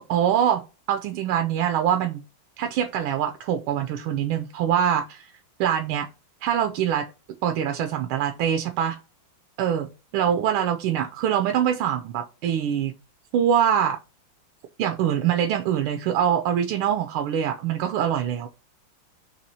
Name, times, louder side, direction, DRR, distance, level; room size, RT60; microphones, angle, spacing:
voice 1, 0.1-0.6 0.9-2.2 2.6-5.3 5.6-6.1 6.4-7.1 7.4-9.0 9.6-12.9 13.3-14.0 14.8-18.5, right 9 dB, 90° right, 1.4 m, -24 dB
4.2 x 3.0 x 4.0 m
omnidirectional pair, 2.2 m